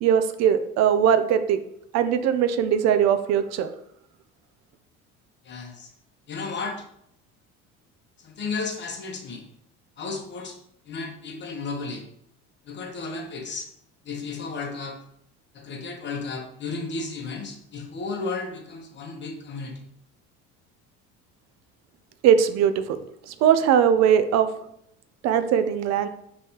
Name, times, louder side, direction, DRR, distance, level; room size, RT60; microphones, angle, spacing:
voice 1, 0.0-1.6 1.9-3.7 22.2-23.0 23.3-24.5 25.2-26.1, right 8 dB, 60° right, 10 dB, 0.5 m, -20 dB
voice 2, 5.4-5.9 6.3-6.8 8.2-9.4 10.0-10.6 10.9-12.0 12.7-13.7 14.0-15.0 15.5-19.8, left 4 dB, 35° left, 3 dB, 1.0 m, -33 dB
5.3 x 3.3 x 2.8 m, 0.74 s
cardioid pair, 115°, 30 cm